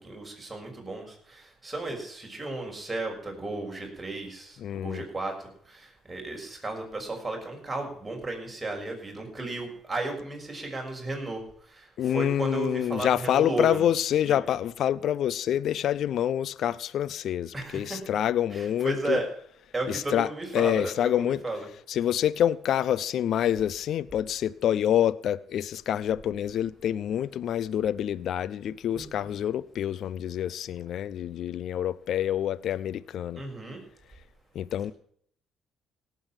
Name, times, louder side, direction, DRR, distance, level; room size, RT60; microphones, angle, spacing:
voice 1, 0.0-5.3 5.6-13.8 14.2-14.4 17.5-18.0 18.5-19.3 19.7-21.7 28.9-29.3 33.4-33.8, right 2 dB, 20° right, 6.5 m, -34 dB
voice 2, 4.6-5.0 12.0-19.2 19.9-21.4 21.9-33.4 34.5-34.9, left 10 dB, 65° left, 0.6 m, -27 dB
17.5 x 8.5 x 7.4 m
supercardioid pair, 60°, 0 cm